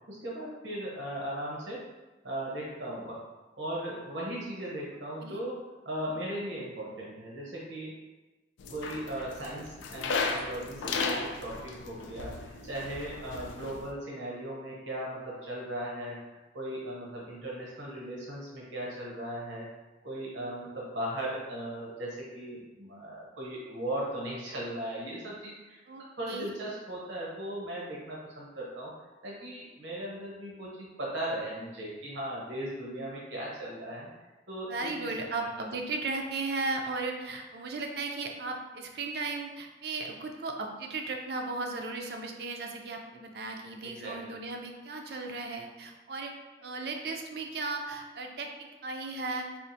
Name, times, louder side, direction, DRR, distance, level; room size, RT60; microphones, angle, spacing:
voice 1, 0.1-1.8 2.2-3.2 3.6-7.9 8.7-16.2 16.5-19.7 20.0-28.9 29.2-34.1 34.5-35.1 43.8-44.3, right 1 dB, 85° right, -4 dB, 0.9 m, -38 dB
sound 1, 8.6-13.9, left 4 dB, 85° left, 0.3 m, -35 dB
voice 2, 25.9-26.5 34.7-46.3 46.6-48.5 48.8-49.5, right 3 dB, 55° right, 2 dB, 0.4 m, -36 dB
4.3 x 2.4 x 2.6 m, 1.1 s
head